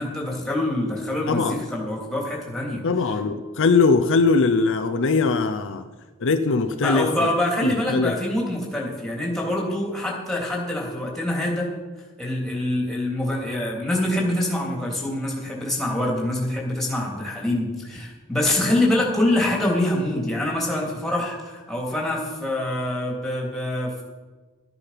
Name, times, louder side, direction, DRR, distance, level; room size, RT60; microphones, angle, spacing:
voice 1, 0.0-2.8 6.8-11.7 12.2-24.0, left 1 dB, ahead, -3 dB, 3.3 m, -25 dB
voice 2, 1.3-1.6 2.8-5.9 6.2-7.3 7.6-8.2, left 4 dB, 60° left, 8 dB, 0.7 m, -21 dB
13.5 x 9.9 x 5.9 m, 1.3 s
head